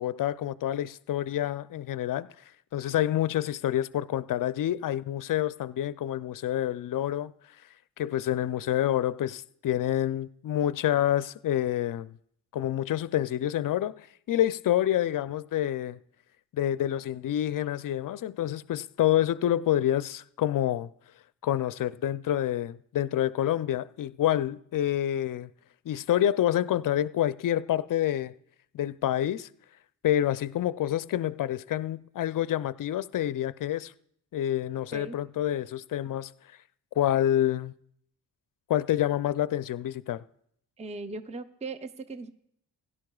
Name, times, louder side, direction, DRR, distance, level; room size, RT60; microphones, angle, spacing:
voice 1, 0.0-2.3 2.7-7.3 8.0-12.2 12.5-16.0 16.5-20.9 21.4-25.5 25.9-28.3 28.7-29.5 30.0-33.9 34.3-36.3 37.0-37.7 38.7-40.2, left 12 dB, 50° left, 0.5 m, -27 dB
voice 2, 40.8-42.3, right 3 dB, 15° right, 0.6 m, -38 dB
16.5 x 11.0 x 2.3 m
supercardioid pair, 45°, 43 cm